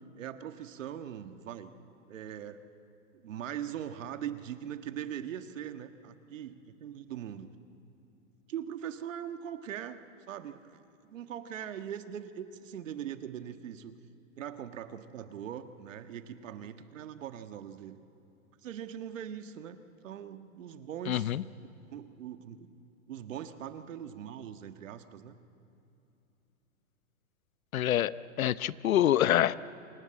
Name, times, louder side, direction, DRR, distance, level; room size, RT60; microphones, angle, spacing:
voice 1, 0.1-1.7 2.1-2.6 3.1-7.5 8.5-10.8 11.1-14.0 14.4-18.0 18.6-21.3 21.9-22.7 23.1-25.4, right 9 dB, 65° right, 8 dB, 1.5 m, -41 dB
voice 2, 21.1-21.4 27.7-28.1 28.4-29.6, left 12 dB, 80° left, 17 dB, 0.8 m, -26 dB
26.0 x 20.5 x 8.8 m, 2.8 s
hypercardioid pair, 160°, 41 cm